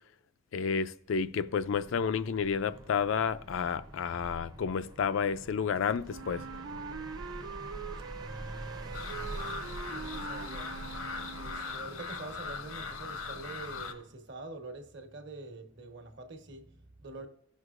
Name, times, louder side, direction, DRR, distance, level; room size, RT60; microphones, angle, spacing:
voice 1, 0.5-6.4, left 6 dB, 65° left, 0.4 m, -30 dB
sound 1, 1.4-14.1, right 1 dB, 20° right, 0.6 m, -46 dB
Wind instrument woodwind instrument, 6.1-11.9, right 5 dB, 75° right, 0.5 m, -43 dB
voice 2, 8.2-9.6 9.9-10.7 11.4-17.3, right 2 dB, 55° right, 1.2 m, -45 dB
sound 2, 8.9-13.9, left 5 dB, 80° left, 0.9 m, -40 dB
17.5 x 6.3 x 2.5 m
head